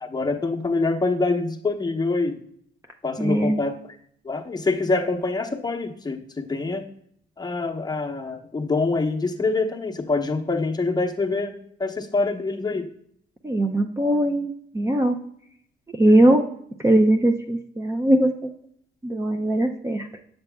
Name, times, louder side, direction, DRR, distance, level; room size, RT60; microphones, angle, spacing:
voice 1, 0.0-2.4 3.0-3.7 4.2-6.9 7.4-12.9, left 3 dB, 20° left, 2 dB, 0.9 m, -25 dB
voice 2, 3.2-3.5 13.4-15.2 15.9-16.4 16.8-18.5 19.0-20.1, right 1 dB, 15° right, 4 dB, 0.5 m, -20 dB
8.1 x 6.5 x 2.2 m, 0.67 s
cardioid pair, 90°, 20 cm